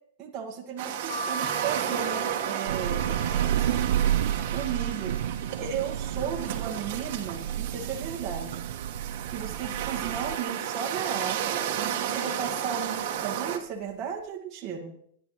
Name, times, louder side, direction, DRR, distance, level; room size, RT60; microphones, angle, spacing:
voice 1, 0.2-3.2 4.5-5.2 5.6-8.6 9.3-14.9, right 7 dB, 20° right, -2 dB, 1.9 m, -35 dB
sound 1, 0.8-13.6, right 10 dB, 45° right, 1.6 m, -33 dB
sound 2, 1.1-6.8 7.2-8.0 8.4-8.5 8.7-9.8 10.3-10.6 11.4-11.7 12.5-12.8 13.0-13.2, right 2 dB, 65° left, 5.1 m, -41 dB
Thunder / Rain, 2.7-10.4, right 11 dB, 70° right, 0.6 m, -30 dB
26.0 x 10.5 x 3.2 m, 0.66 s
supercardioid pair, 175°, 0 cm